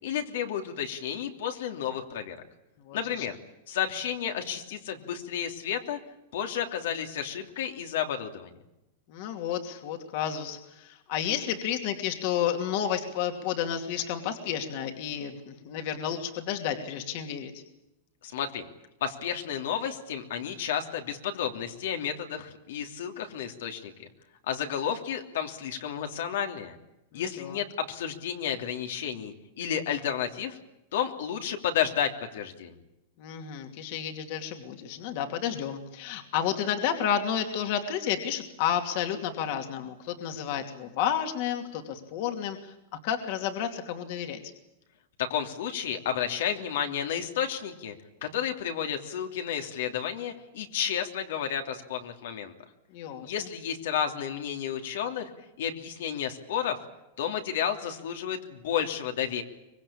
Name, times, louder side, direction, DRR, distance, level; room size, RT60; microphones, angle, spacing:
voice 1, 0.0-2.4 2.9-3.4 3.7-6.0 6.3-8.5 18.2-18.7 19.0-24.1 24.4-26.8 27.1-30.6 30.9-32.8 45.2-47.9 48.2-52.5 53.2-55.3 55.6-56.8 57.2-59.4, left 9 dB, 70° left, 5 dB, 3.0 m, -31 dB
voice 2, 2.8-3.3 9.1-17.6 27.1-27.6 33.2-42.7 43.0-44.4 52.9-53.5, left 9 dB, 45° left, 5 dB, 2.7 m, -31 dB
24.5 x 22.0 x 8.8 m, 0.92 s
supercardioid pair, 170°, 0 cm